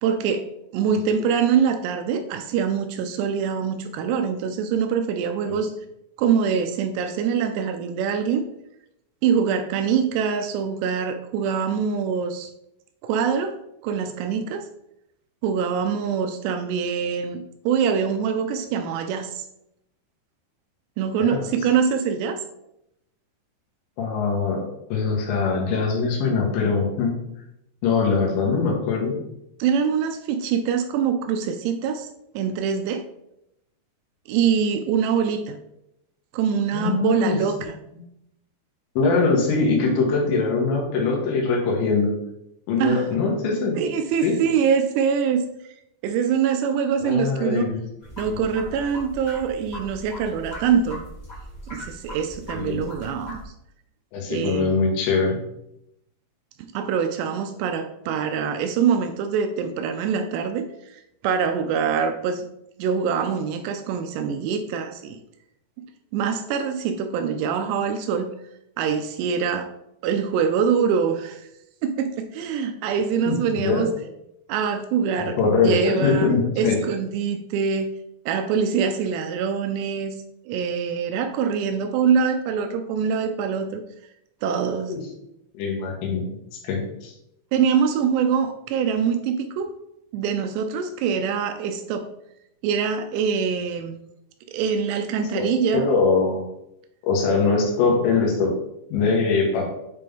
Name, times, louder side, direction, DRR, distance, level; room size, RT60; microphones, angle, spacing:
voice 1, 0.0-0.5 0.7-5.7 6.2-8.4 9.2-12.5 13.0-13.6 13.8-14.7 15.4-19.4 21.0-22.4 29.6-32.1 32.3-33.1 34.3-35.6 36.3-37.7 42.8-43.1 43.7-45.4 46.0-47.7 48.2-51.0 51.7-53.4 54.3-54.8 56.6-62.5 62.8-65.2 66.1-68.3 68.8-69.7 70.0-71.5 71.8-73.9 74.5-75.4 75.6-77.9 78.3-80.2 80.5-83.8 84.4-84.9 87.5-89.7 90.1-92.1 92.6-94.0 94.5-95.8, right 7 dB, 85° right, 7 dB, 2.6 m, -24 dB
voice 2, 24.0-24.7 24.9-27.1 27.8-29.1 36.7-37.4 39.0-42.1 42.7-43.8 44.2-44.4 47.0-47.8 48.2-48.4 52.5-52.8 54.1-55.4 73.3-73.8 75.2-76.8 84.9-85.0 85.6-86.2 86.7-87.1 95.4-96.4 97.0-98.5 98.9-99.7, left 4 dB, 80° left, 0 dB, 3.6 m, -22 dB
sound 1, 48.0-53.4, equal, 60° left, 0.4 m, -39 dB
8.3 x 3.7 x 3.5 m, 0.82 s
omnidirectional pair, 5.1 m